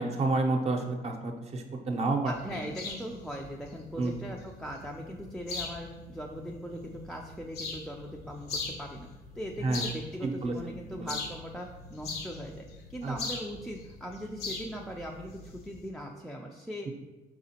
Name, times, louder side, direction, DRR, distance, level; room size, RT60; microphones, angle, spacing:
voice 1, 0.0-2.6 4.0-4.2 9.6-9.9 10.2-11.1 13.0-13.1, right 3 dB, 40° right, 3 dB, 0.6 m, -30 dB
sound 1, 2.3-15.9, left 3 dB, 75° left, 0.7 m, -42 dB
voice 2, 2.3-9.1 9.4-12.6 12.9-16.9, equal, ahead, 0 dB, 0.3 m, -40 dB
4.9 x 3.6 x 2.8 m, 1.2 s
cardioid pair, 110°, 17 cm